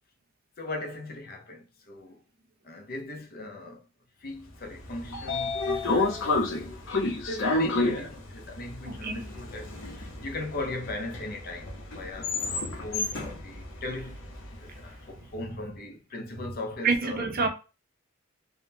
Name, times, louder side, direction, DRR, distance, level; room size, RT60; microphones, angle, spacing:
voice 1, 0.6-2.2 2.6-3.8 4.2-14.2 14.5-17.2, left 2 dB, 50° left, 0.6 m, -39 dB
Train / Sliding door, 4.7-14.8, left 3 dB, 80° left, 0.8 m, -30 dB
voice 2, 8.9-9.3 16.8-17.5, right 4 dB, 45° right, 0.6 m, -27 dB
3.5 x 2.2 x 2.7 m
head